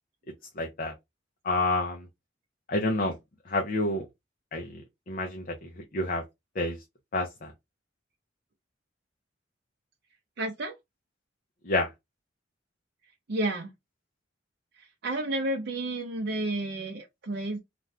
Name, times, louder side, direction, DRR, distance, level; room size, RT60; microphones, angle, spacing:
voice 1, 0.6-0.9 1.4-2.1 2.7-3.2 3.5-4.1 4.5-4.8 5.1-6.2 6.6-6.8 7.1-7.5 11.7-11.9, left 2 dB, 50° left, 0.6 m, -28 dB
voice 2, 10.4-10.7 13.3-13.7 14.8-17.6, right 2 dB, 60° right, 0.5 m, -31 dB
2.5 x 2.3 x 3.2 m
head